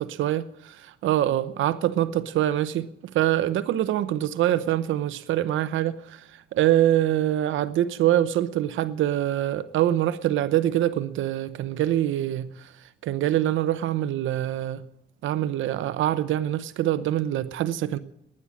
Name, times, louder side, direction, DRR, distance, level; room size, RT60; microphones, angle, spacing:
voice 1, 0.0-12.7 13.0-14.8 15.2-18.0, right 12 dB, 80° right, 0.8 m, -24 dB
19.5 x 9.8 x 7.5 m
cardioid pair, 90°, 20 cm